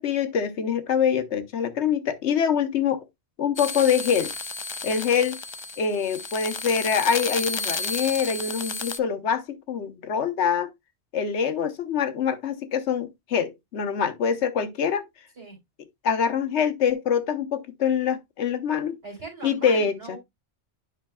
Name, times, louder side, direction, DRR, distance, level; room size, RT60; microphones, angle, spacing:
voice 1, 0.0-3.0 3.4-4.3 4.8-5.4 5.8-10.7 11.1-15.0 16.0-19.0 19.4-20.2, left 7 dB, 85° left, 1.2 m, -25 dB
sound 1, 3.6-9.0, left 3 dB, 40° left, 0.4 m, -32 dB
voice 2, 19.0-20.2, right 3 dB, 65° right, 3.7 m, -40 dB
9.8 x 5.5 x 2.2 m
omnidirectional pair, 1.1 m